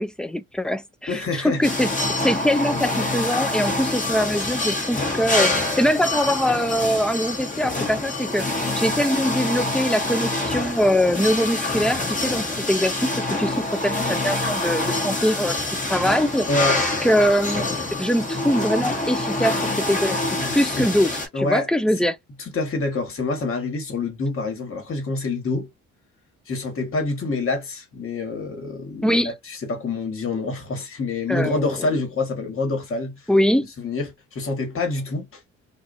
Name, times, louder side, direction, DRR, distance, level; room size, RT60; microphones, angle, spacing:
voice 1, 0.0-1.9 2.2-15.6 15.9-17.7 18.0-20.2 20.5-21.1 21.4-22.2 29.0-29.3 31.3-31.9 33.3-33.7, equal, 5° left, 0.3 m, -23 dB
voice 2, 1.1-1.7 2.7-2.8 16.5-16.8 20.4-20.9 21.3-21.7 22.0-22.1 22.4-25.7 26.5-33.3 33.8-35.4, left 3 dB, 45° left, 1.5 m, -27 dB
sound 1, 1.6-21.3, left 2 dB, 25° left, 1.1 m, -26 dB
2.6 x 2.4 x 2.5 m
cardioid pair, 90°, 30 cm